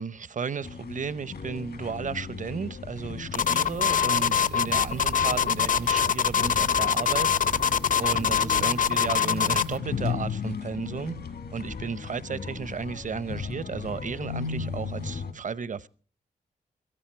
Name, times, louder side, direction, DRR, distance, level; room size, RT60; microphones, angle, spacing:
voice 1, 0.0-7.3 8.0-11.1 11.5-15.9, right 5 dB, 50° right, 0.7 m, -34 dB
sound 1, 0.6-15.3, left 5 dB, 70° left, 1.6 m, -36 dB
sound 2, 3.3-9.8, left 8 dB, 55° left, 0.7 m, -24 dB
sound 3, 4.9-10.4, right 5 dB, 75° right, 0.9 m, -44 dB
16.5 x 14.0 x 4.5 m
cardioid pair, 50°, 17 cm